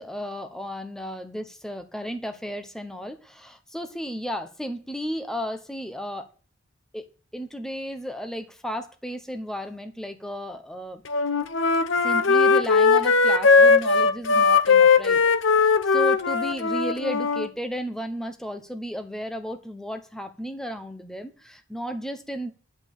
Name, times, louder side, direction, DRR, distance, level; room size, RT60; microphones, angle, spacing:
voice 1, 0.0-6.3 6.9-7.0 7.3-11.0 11.9-15.2 15.5-22.5, equal, 5° left, 7 dB, 0.9 m, -34 dB
Wind instrument woodwind instrument, 11.1-17.5, left 4 dB, 70° left, 0.8 m, -19 dB
10.5 x 5.3 x 8.2 m, 0.37 s
head